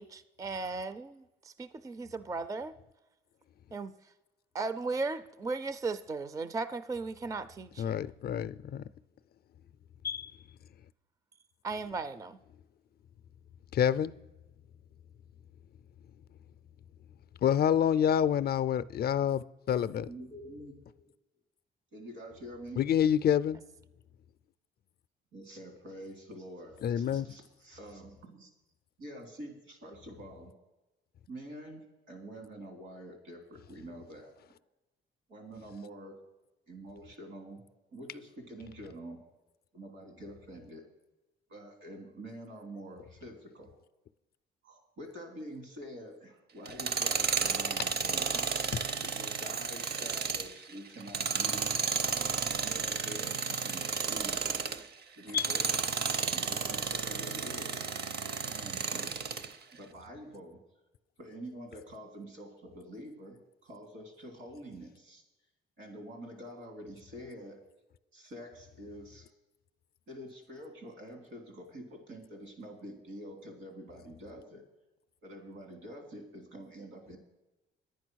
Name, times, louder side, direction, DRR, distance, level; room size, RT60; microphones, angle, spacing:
voice 1, 0.0-2.8 3.7-4.0 4.5-8.0 11.6-12.4, right 3 dB, 15° right, 0.4 m, -36 dB
voice 2, 7.8-8.8 10.0-10.3 13.7-14.1 17.4-20.1 22.8-23.6 26.8-27.3 55.3-55.5, left 9 dB, 50° left, 0.4 m, -27 dB
voice 3, 20.0-21.1 21.9-22.8 25.3-28.5 29.0-30.5 31.3-34.3 35.3-36.2 36.7-37.6 37.9-39.2 39.7-40.8 41.5-43.8 44.6-48.4 49.1-52.1 52.6-54.6 55.2-57.9 58.5-59.1 59.7-60.6 61.2-65.2 65.8-67.6 68.1-69.3 70.1-74.6 75.2-77.2, right 1 dB, 80° right, 3.2 m, -47 dB
Tools, 46.7-54.9 55.3-59.5, right 5 dB, 55° right, 0.7 m, -32 dB
11.0 x 9.2 x 6.2 m
cardioid pair, 150°, 20 cm